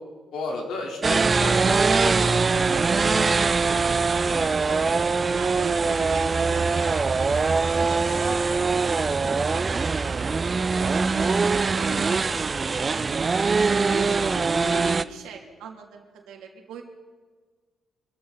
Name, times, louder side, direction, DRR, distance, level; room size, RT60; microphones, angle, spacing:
voice 1, 0.3-3.7 4.3-5.0, left 3 dB, 70° left, 0 dB, 3.6 m, -36 dB
sound 1, 1.0-15.0, right 4 dB, 30° right, 0.5 m, -22 dB
voice 2, 5.3-13.3 13.8-16.8, right 6 dB, 90° right, 1 dB, 2.8 m, -40 dB
25.0 x 14.0 x 4.0 m, 1.4 s
cardioid pair, 90°, 0 cm